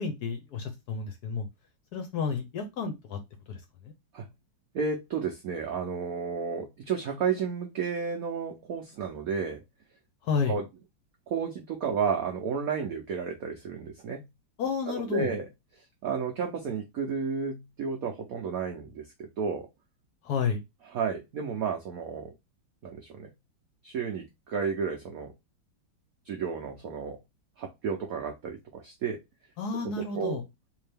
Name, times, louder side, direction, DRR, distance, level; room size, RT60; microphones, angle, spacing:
voice 1, 0.0-1.5 1.9-3.2 3.5-3.9 10.2-10.6 14.6-15.3 20.2-20.6 29.6-30.4, left 5 dB, 70° left, 6 dB, 1.0 m, -31 dB
voice 2, 4.7-9.6 10.5-10.7 11.3-14.2 14.9-15.5 16.0-19.7 20.9-22.3 22.8-23.3 23.8-25.3 26.2-27.2 27.6-29.2 30.0-30.4, right 6 dB, 85° right, 2 dB, 0.7 m, -32 dB
3.6 x 2.7 x 3.3 m, 0.21 s
omnidirectional pair, 2.2 m